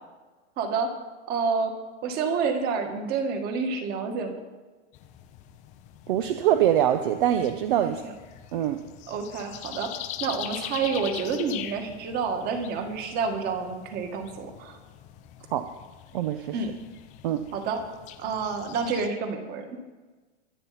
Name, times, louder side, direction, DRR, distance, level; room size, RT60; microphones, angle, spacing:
voice 1, 0.6-0.9 1.3-1.7 2.0-4.3 7.8-7.9 9.1-9.9 10.2-14.8 16.5-16.7 17.5-17.8 18.2-19.6, right 5 dB, 25° right, 5 dB, 2.0 m, -28 dB
sound 1, 4.9-19.1, left 11 dB, 20° left, 0.6 m, -43 dB
voice 2, 6.1-8.0 8.5-8.8 15.5-15.7 16.1-16.6 17.2-17.5, right 11 dB, 45° right, 9 dB, 0.9 m, -24 dB
24.0 x 9.1 x 4.3 m, 1.3 s
hypercardioid pair, 155°, 35 cm